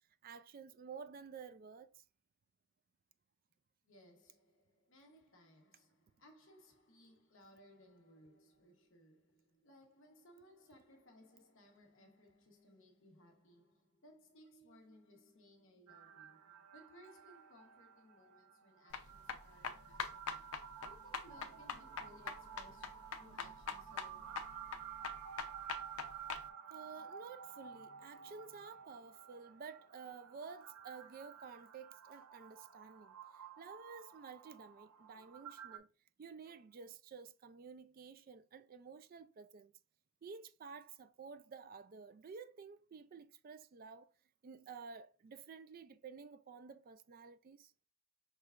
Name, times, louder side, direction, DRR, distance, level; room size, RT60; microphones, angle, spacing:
voice 1, 0.2-2.0 26.7-35.9 36.2-39.7 40.2-44.1 44.4-47.7, right 5 dB, 40° right, 0.3 m, -52 dB
voice 2, 3.8-20.5 20.9-24.5, equal, 60° left, 1.1 m, -63 dB
sound 1, 15.9-35.8, right 8 dB, 90° right, 0.7 m, -53 dB
sound 2, 18.9-26.4, left 6 dB, 75° left, 0.6 m, -44 dB
6.2 x 3.2 x 2.4 m
head